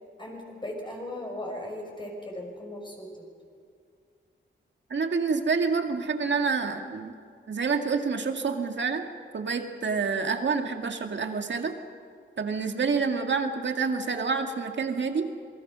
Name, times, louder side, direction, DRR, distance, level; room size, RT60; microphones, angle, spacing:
voice 1, 0.2-3.1, left 1 dB, 25° left, 0 dB, 6.3 m, -37 dB
voice 2, 4.9-7.1 7.5-9.1 9.3-11.7 12.4-15.3, right 5 dB, 65° right, 5 dB, 2.1 m, -28 dB
27.0 x 22.5 x 6.3 m, 2.3 s
wide cardioid pair, 105°, 20 cm